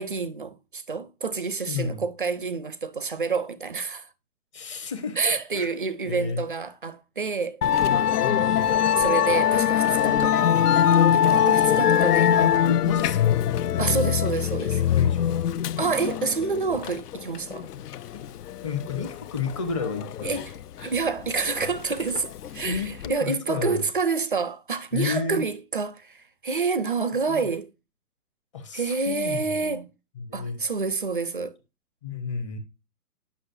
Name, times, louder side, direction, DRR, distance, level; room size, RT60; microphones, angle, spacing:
voice 1, 0.0-4.1 5.2-7.6 8.9-10.4 11.1-12.3 13.8-14.8 15.8-17.7 20.2-20.5 20.8-27.7 28.7-29.8 30.3-31.6, right 4 dB, 35° right, 0.4 m, -28 dB
voice 2, 1.7-2.0 4.5-6.4 8.2-8.7 12.3-13.3 14.7-15.4 18.1-18.2 18.6-20.4 22.6-23.8 24.9-25.4 27.3-27.4 28.5-29.8 30.2-30.6 32.0-32.6, left 5 dB, 20° left, 0.9 m, -32 dB
Musical instrument, 7.6-23.1, left 9 dB, 75° left, 0.6 m, -23 dB
9.8 x 6.0 x 2.5 m
hypercardioid pair, 165°, 46 cm